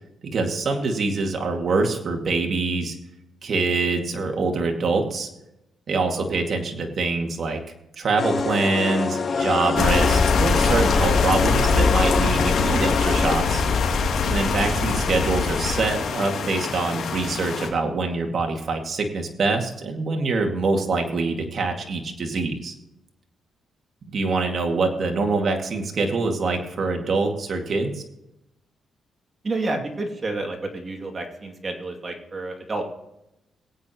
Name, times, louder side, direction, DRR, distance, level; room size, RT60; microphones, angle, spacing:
voice 1, 0.2-3.0 3.4-5.3 5.9-7.6 8.0-13.6 14.2-22.7 24.1-28.0, right 3 dB, 55° right, 3 dB, 2.2 m, -24 dB
voice 2, 6.0-6.4 9.4-9.5 14.6-14.8 24.4-24.5 29.4-32.9, right 2 dB, 35° right, 2 dB, 2.5 m, -30 dB
sound 1, 8.2-13.4, left 4 dB, 45° left, 0.9 m, -26 dB
sound 2, 9.8-17.7, left 5 dB, 75° left, 2.6 m, -22 dB
21.0 x 8.8 x 3.0 m, 0.89 s
cardioid pair, 85°, 0 cm